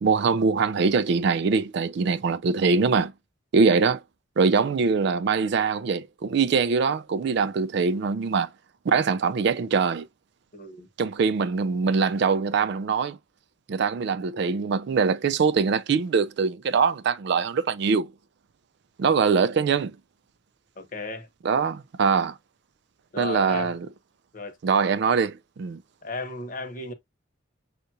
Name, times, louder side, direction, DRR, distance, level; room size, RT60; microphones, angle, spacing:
voice 1, 0.0-3.1 3.5-4.0 4.4-8.5 8.9-10.1 11.0-13.2 13.7-18.1 19.0-20.0 21.4-22.4 23.2-23.8 24.6-25.8, right 5 dB, 55° right, 0.3 m, -23 dB
voice 2, 10.5-10.9 20.8-21.3 23.1-23.7 24.3-24.6 26.0-26.9, left 2 dB, 40° left, 0.9 m, -34 dB
6.5 x 2.4 x 2.7 m
head